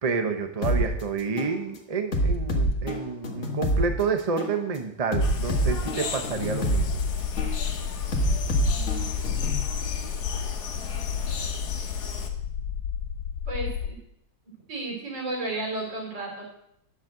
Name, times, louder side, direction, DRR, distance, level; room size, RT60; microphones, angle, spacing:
voice 1, 0.0-7.0 7.6-7.8, right 5 dB, 30° right, 6 dB, 0.7 m, -29 dB
sound 1, 0.6-0.8 1.4-1.6 2.1-3.8 4.4-4.6 5.1-6.8 7.4-7.6 8.1-9.6, equal, 40° left, 1.7 m, -25 dB
sound 2, 5.2-12.3, left 5 dB, 60° left, 1.6 m, -35 dB
sound 3, 6.8-13.9, left 8 dB, 85° left, 1.4 m, -31 dB
voice 2, 8.7-9.3 13.5-14.0 14.7-16.4, right 2 dB, 70° right, -1 dB, 4.1 m, -33 dB
10.5 x 6.4 x 7.4 m, 0.75 s
omnidirectional pair, 2.0 m